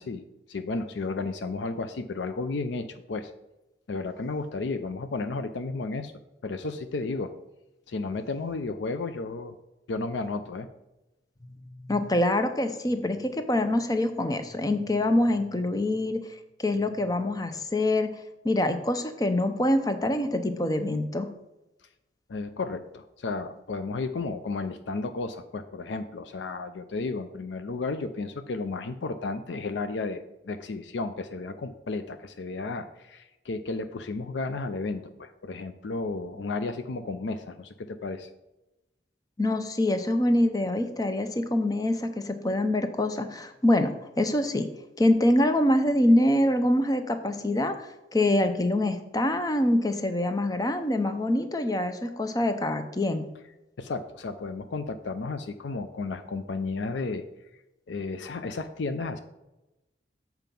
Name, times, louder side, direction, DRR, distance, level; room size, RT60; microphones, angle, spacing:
voice 1, 0.0-3.3 3.9-6.1 6.4-7.3 7.9-9.5 9.9-10.7 22.3-38.3 53.8-57.2 57.9-59.2, left 3 dB, 70° left, 9 dB, 0.5 m, -33 dB
voice 2, 11.9-16.2 16.6-18.1 18.4-21.3 39.4-44.7 45.0-53.3, left 1 dB, 20° left, 8 dB, 0.6 m, -25 dB
7.5 x 4.6 x 5.3 m, 0.96 s
head